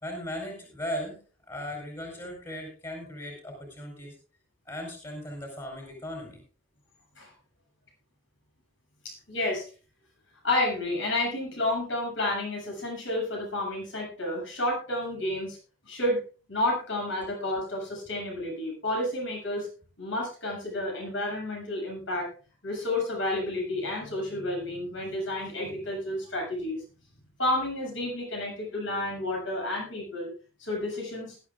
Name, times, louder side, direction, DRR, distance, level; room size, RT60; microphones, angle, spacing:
voice 1, 0.0-4.2 4.7-6.4, equal, 20° left, 1 dB, 4.3 m, -37 dB
voice 2, 9.0-9.7 10.4-15.6 15.8-16.2 16.5-19.7 20.0-22.3 22.6-26.8 27.4-30.3 30.6-31.4, left 1 dB, 70° left, -1 dB, 7.6 m, -30 dB
20.0 x 12.0 x 2.5 m, 0.36 s
head